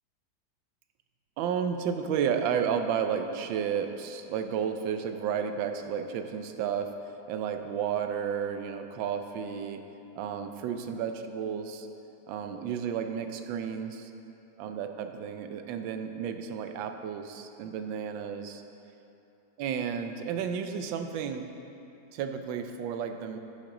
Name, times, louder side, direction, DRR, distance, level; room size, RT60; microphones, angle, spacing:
voice 1, 1.4-6.9 7.3-9.8 10.1-11.9 12.3-14.1 14.6-18.6 19.6-21.5 22.1-23.4, right 7 dB, 80° right, 7 dB, 1.3 m, -32 dB
10.5 x 5.4 x 4.9 m, 2.9 s
omnidirectional pair, 2.1 m